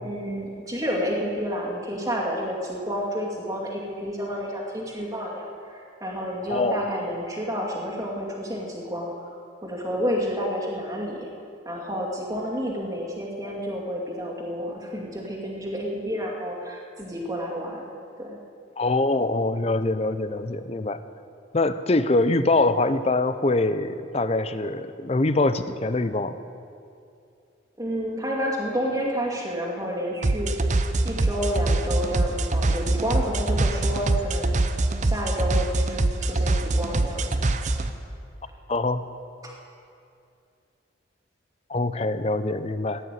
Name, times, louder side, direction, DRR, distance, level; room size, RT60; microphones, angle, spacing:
voice 1, 0.0-11.3 11.6-17.8 18.2-18.4 27.8-30.5 31.0-34.6 35.0-37.5 39.4-39.5, equal, 15° right, -2 dB, 2.4 m, -30 dB
voice 2, 6.5-6.8 18.8-21.0 21.5-26.4 38.7-39.0 41.7-43.0, left 2 dB, 30° left, 12 dB, 0.6 m, -24 dB
sound 1, 30.2-37.9, right 2 dB, 40° right, 0.7 m, -24 dB
15.5 x 9.6 x 9.2 m, 2.5 s
head